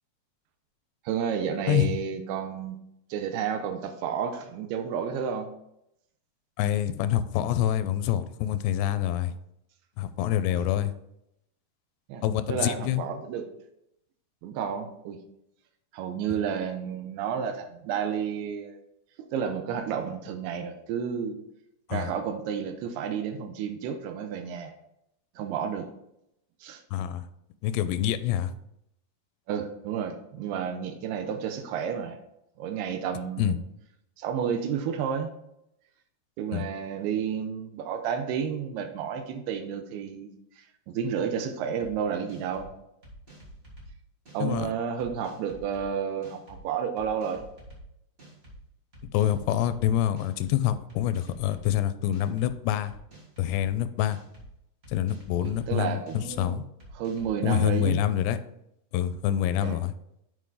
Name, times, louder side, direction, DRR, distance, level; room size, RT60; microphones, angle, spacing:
voice 1, 1.1-2.8 3.1-5.5 10.5-10.6 12.1-12.2 12.5-13.5 14.4-15.2 15.9-18.8 19.2-21.4 21.9-24.7 25.4-25.9 26.6-26.8 29.5-32.2 32.6-33.5 34.2-35.3 36.4-40.3 40.6-42.7 44.3-47.4 55.4-56.5 57.0-58.0 59.6-59.7, right 7 dB, 85° right, 7 dB, 2.7 m, -31 dB
voice 2, 6.6-9.3 10.0-10.9 12.2-13.0 21.9-22.1 26.9-27.3 27.6-28.5 33.4-33.6 36.5-36.7 44.4-44.7 49.1-52.9 53.4-54.2 54.9-56.6 57.4-58.4 58.9-59.9, left 11 dB, 85° left, 12 dB, 2.7 m, -26 dB
sound 1, 41.8-41.9 42.3-42.7 43.0-43.9 44.2-44.6 45.0-45.8 46.2-46.6 47.0-47.8 48.2-48.5 48.9-49.8 50.2-50.5 50.9-51.7 52.1-52.5 52.9-53.7 54.1-54.5 54.8-55.7 56.1-56.4 56.8-57.3, equal, 40° right, 0.9 m, -49 dB
8.2 x 4.8 x 3.8 m, 0.79 s
omnidirectional pair, 4.7 m